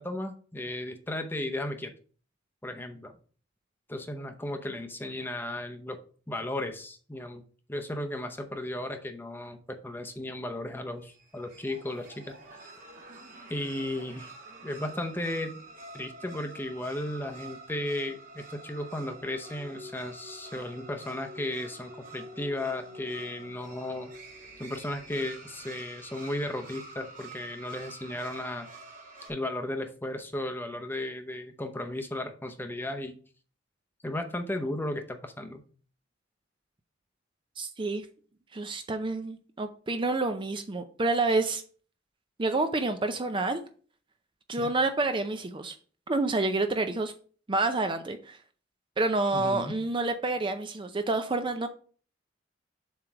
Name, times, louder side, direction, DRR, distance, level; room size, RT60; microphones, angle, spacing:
voice 1, 0.0-1.9 2.6-3.1 3.9-6.0 6.3-7.4 7.7-12.3 13.5-14.3 14.6-15.6 15.9-24.1 24.6-28.7 29.3-33.2 34.0-35.6 44.6-44.7 49.3-49.8, left 1 dB, 10° left, 0.7 m, -35 dB
sound 1, 11.0-29.3, right 2 dB, 45° right, 2.2 m, -47 dB
voice 2, 37.6-38.1 38.5-41.6 42.4-43.6 44.5-45.8 46.1-47.1 47.5-48.4 49.0-51.7, right 2 dB, 25° right, 0.5 m, -28 dB
7.3 x 3.3 x 5.9 m
head